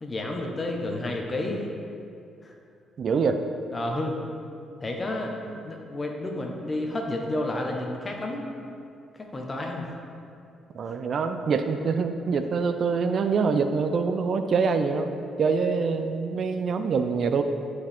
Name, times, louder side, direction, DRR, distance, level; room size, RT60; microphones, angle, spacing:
voice 1, 0.0-1.7 2.4-2.5 3.7-4.2 4.8-5.3 5.6-8.4 9.2-9.9, left 1 dB, 25° left, 1 dB, 1.1 m, -30 dB
voice 2, 3.0-3.4 5.5-5.6 10.7-15.1 15.4-17.4, right 5 dB, 55° right, 8 dB, 0.4 m, -25 dB
11.5 x 4.9 x 3.6 m, 2.5 s
cardioid pair, 90°, 0 cm